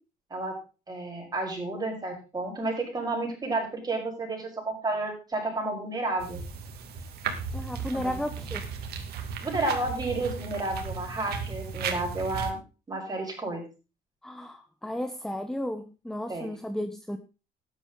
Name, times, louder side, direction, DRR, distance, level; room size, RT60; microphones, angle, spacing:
voice 1, 0.9-6.4 7.9-8.1 9.4-12.6 12.9-13.6 16.3-16.5, right 2 dB, 25° right, 5.6 m, -31 dB
sound 1, 6.2-12.5, right 6 dB, 70° right, 2.4 m, -35 dB
voice 2, 7.5-8.6 14.2-17.2, left 1 dB, 5° left, 0.9 m, -34 dB
13.0 x 10.5 x 3.8 m
cardioid pair, 110°, 17 cm